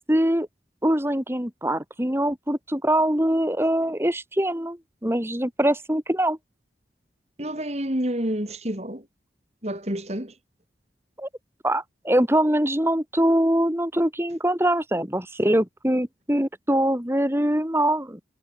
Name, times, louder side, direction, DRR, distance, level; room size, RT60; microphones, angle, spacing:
voice 1, 0.1-0.5 0.8-6.4 11.2-11.3 11.6-18.2, right 1 dB, 15° right, 2.9 m, -23 dB
voice 2, 7.4-9.0 9.6-10.3, equal, 35° right, 4.5 m, -28 dB
head